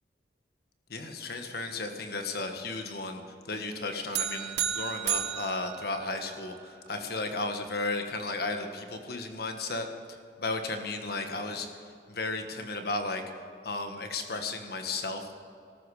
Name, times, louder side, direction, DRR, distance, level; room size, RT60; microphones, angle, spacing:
voice 1, 0.9-15.3, left 3 dB, 60° left, 5 dB, 1.5 m, -34 dB
sound 1, 4.1-6.6, right 10 dB, 70° right, 1.0 m, -33 dB
18.5 x 14.0 x 4.9 m, 2.5 s
head